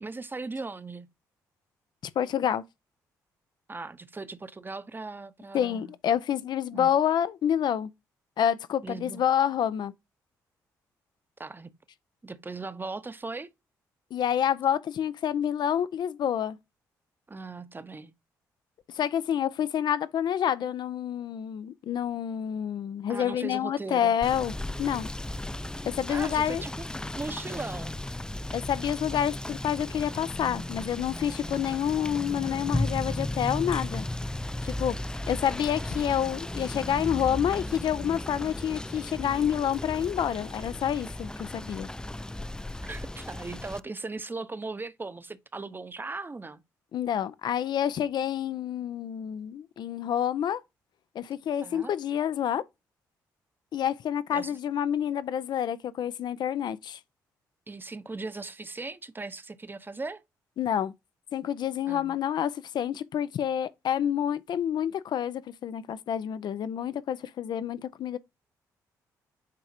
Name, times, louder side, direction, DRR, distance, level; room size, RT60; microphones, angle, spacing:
voice 1, 0.0-1.1 3.7-5.9 6.7-6.9 8.8-9.2 11.4-11.7 12.2-13.5 17.3-18.1 23.1-24.2 26.1-26.7 27.1-28.0 42.8-46.6 51.6-51.9 54.3-54.6 57.7-60.2 61.9-62.2, right 3 dB, 25° right, 0.9 m, -38 dB
voice 2, 2.2-2.6 5.5-7.9 8.4-9.9 14.1-16.6 18.9-25.1 25.9-26.6 28.5-34.1 34.6-34.9 35.3-41.9 46.9-50.6 51.1-52.6 53.7-57.0 60.6-60.9 61.3-68.2, left 9 dB, 65° left, 0.6 m, -28 dB
Rain / Motor vehicle (road), 24.2-43.8, left 1 dB, 10° left, 0.4 m, -35 dB
7.6 x 4.8 x 2.7 m
hypercardioid pair, 50°, 8 cm